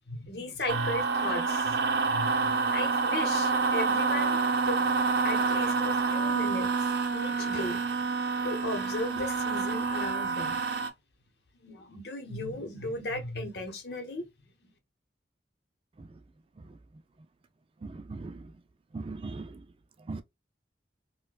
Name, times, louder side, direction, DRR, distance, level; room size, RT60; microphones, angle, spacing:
voice 1, 0.1-4.4 4.6-4.9 5.2-8.1 8.4-10.6 11.6-14.3, left 2 dB, 65° left, 1.0 m, -36 dB
sound 1, 0.7-10.9, right 4 dB, 65° right, 0.6 m, -28 dB
voice 2, 17.8-18.5 18.9-19.6 20.1-20.2, right 3 dB, 30° right, 0.3 m, -40 dB
4.3 x 2.2 x 2.3 m
head